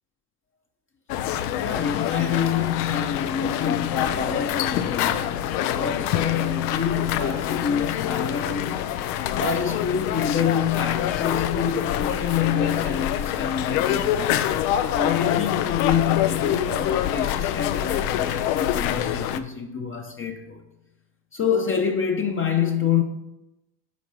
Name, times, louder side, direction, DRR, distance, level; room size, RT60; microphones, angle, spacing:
sound 1, 1.1-19.4, left 11 dB, 80° left, 0.7 m, -26 dB
voice 1, 1.6-8.9 9.4-14.5 14.9-20.6 21.3-23.0, left 7 dB, 25° left, 0.8 m, -27 dB
8.4 x 4.8 x 5.5 m
supercardioid pair, 90°, 47 cm